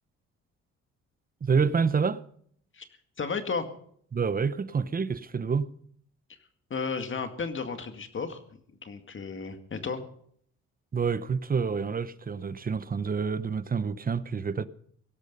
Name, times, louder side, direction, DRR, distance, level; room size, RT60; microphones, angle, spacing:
voice 1, 1.4-2.2 4.1-5.7 10.9-14.7, right 5 dB, 30° right, 0.8 m, -28 dB
voice 2, 3.2-3.7 6.7-8.4 8.8-10.0, left 5 dB, 40° left, 2.1 m, -33 dB
17.5 x 12.5 x 5.4 m
cardioid pair, 90°, 30 cm